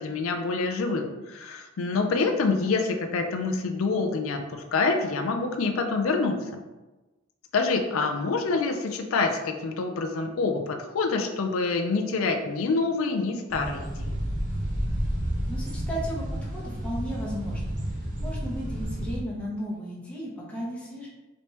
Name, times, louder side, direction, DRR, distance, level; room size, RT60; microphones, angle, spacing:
voice 1, 0.0-6.4 7.5-14.2, left 4 dB, 70° left, 4 dB, 0.4 m, -26 dB
sound 1, 13.5-19.2, equal, 40° right, 0.7 m, -31 dB
voice 2, 15.5-21.1, equal, 5° left, -6 dB, 0.8 m, -35 dB
3.3 x 3.0 x 2.9 m, 1.1 s
head